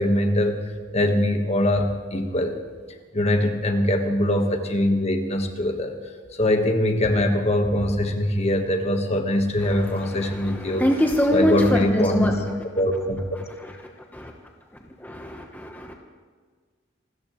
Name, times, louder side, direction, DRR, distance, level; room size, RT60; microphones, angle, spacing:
voice 1, 0.0-2.5 3.1-5.9 6.4-10.8 11.3-12.4 12.8-13.2, left 1 dB, 35° left, 5 dB, 1.4 m, -22 dB
voice 2, 9.6-12.3 13.6-13.7 14.1-14.3 15.0-15.9, equal, 10° left, 2 dB, 1.0 m, -24 dB
27.0 x 14.0 x 3.1 m, 1.5 s
head